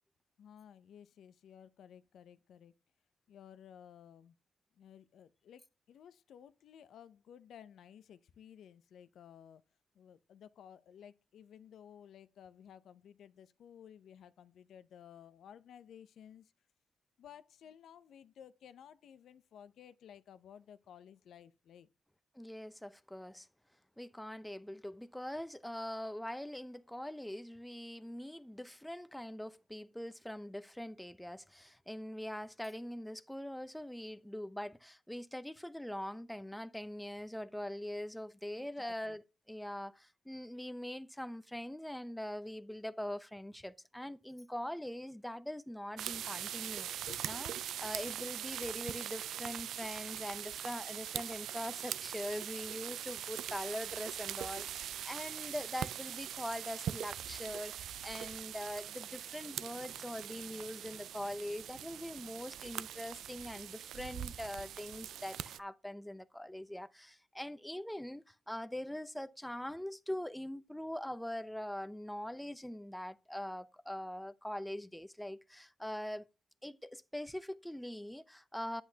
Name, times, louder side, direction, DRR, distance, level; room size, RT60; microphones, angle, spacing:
voice 1, 0.4-2.7 3.3-4.4 4.7-9.6 9.9-16.5 17.2-21.9 38.6-39.2 46.9-47.3, left 9 dB, 80° left, 0.5 m, -56 dB
voice 2, 22.3-23.5 24.0-39.2 39.5-47.5 47.8-76.3 76.6-78.8, left 1 dB, 5° left, 0.7 m, -43 dB
sound 1, 46.0-65.6, right 10 dB, 85° right, 0.3 m, -42 dB
8.3 x 8.0 x 2.8 m
supercardioid pair, 60°, 0 cm